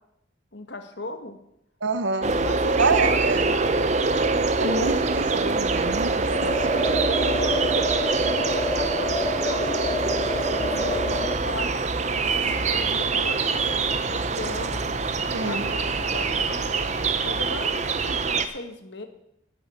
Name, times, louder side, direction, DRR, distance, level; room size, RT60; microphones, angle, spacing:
voice 1, 0.5-1.4 2.2-5.4 6.5-11.7 12.2-14.8 15.3-16.8 17.2-19.1, left 2 dB, 60° left, 6 dB, 1.4 m, -37 dB
voice 2, 1.8-2.3 2.8-3.4 4.6-6.5 15.3-15.7, right 4 dB, 70° right, 11 dB, 0.9 m, -26 dB
sound 1, 2.2-18.5, right 4 dB, 35° right, 0.6 m, -24 dB
sound 2, 6.3-11.3, left 2 dB, 20° left, 0.5 m, -29 dB
sound 3, 9.8-17.5, equal, 40° left, 1.0 m, -45 dB
10.0 x 7.1 x 8.3 m, 0.79 s
head